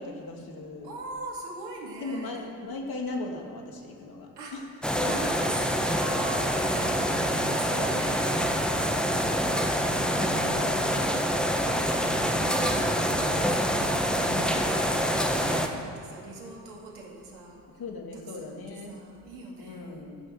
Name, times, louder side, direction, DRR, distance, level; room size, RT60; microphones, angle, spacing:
voice 1, 0.0-0.9 2.0-4.7 5.0-5.1 9.8-11.1 14.2-14.6 17.8-19.0 19.6-20.2, left 3 dB, 50° left, 2 dB, 2.5 m, -38 dB
voice 2, 0.8-2.4 4.4-4.6 5.0-8.2 11.9-17.8 18.1-20.1, right 3 dB, 85° right, -1 dB, 2.3 m, -41 dB
sound 1, 4.8-15.7, equal, ahead, 1.3 m, -26 dB
15.0 x 6.3 x 7.5 m, 2.6 s
hypercardioid pair, 50°, 45 cm